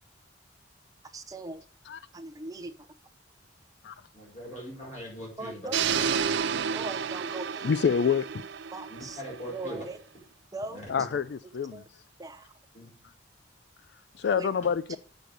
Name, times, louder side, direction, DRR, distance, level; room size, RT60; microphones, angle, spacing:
voice 1, 1.1-1.6 2.1-2.7 5.4-6.0 6.7-7.7 8.7-9.2 9.5-10.0 10.5-10.8 11.7-11.8 12.2-12.5 14.4-14.5 14.9-15.0, right 2 dB, 20° right, 0.7 m, -39 dB
voice 2, 4.1-6.0 8.9-9.8 10.7-10.8 12.7-12.9, equal, 40° left, 5.1 m, -41 dB
sound 1, 5.7-9.7, right 7 dB, 60° right, 0.4 m, -31 dB
voice 3, 7.6-8.3 10.9-11.2 11.5-11.8 14.2-15.0, left 6 dB, 60° left, 0.3 m, -26 dB
8.5 x 6.2 x 6.5 m
head